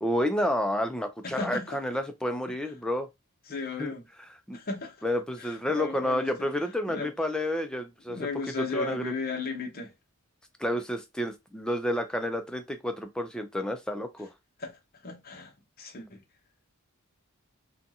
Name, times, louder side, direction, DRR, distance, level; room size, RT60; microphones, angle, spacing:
voice 1, 0.0-3.1 3.8-3.9 4.5-4.6 5.0-8.2 8.7-9.1 10.6-14.3, left 1 dB, 5° left, 0.4 m, -30 dB
voice 2, 1.2-1.8 2.5-2.6 3.5-4.0 4.5-5.0 5.4-6.5 6.9-7.1 8.1-9.9 14.6-15.5 15.8-16.2, left 3 dB, 45° left, 0.7 m, -35 dB
2.6 x 2.3 x 2.7 m
head